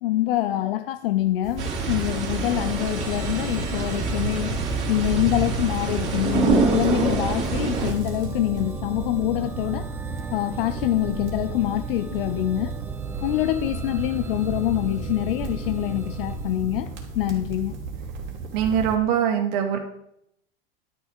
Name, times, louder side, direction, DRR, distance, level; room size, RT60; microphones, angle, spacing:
voice 1, 0.0-9.9 10.3-12.8 13.2-17.8, left 14 dB, 70° left, 0.6 m, -25 dB
sound 1, 1.4-19.0, right 4 dB, 40° right, 2.5 m, -34 dB
sound 2, 1.6-7.9, right 4 dB, 25° right, 3.0 m, -26 dB
sound 3, 2.5-17.2, right 5 dB, 10° right, 0.4 m, -37 dB
voice 2, 18.5-19.8, right 8 dB, 55° right, 2.3 m, -22 dB
11.5 x 6.3 x 4.8 m
supercardioid pair, 135°, 30 cm